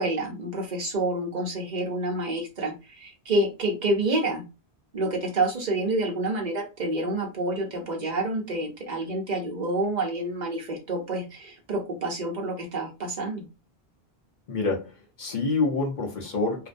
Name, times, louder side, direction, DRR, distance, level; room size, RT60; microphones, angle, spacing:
voice 1, 0.0-4.4 4.9-13.5, right 2 dB, 50° right, 1 dB, 0.7 m, -28 dB
voice 2, 14.5-16.7, left 3 dB, 50° left, -1 dB, 0.7 m, -27 dB
2.5 x 2.1 x 2.5 m, 0.29 s
omnidirectional pair, 1.1 m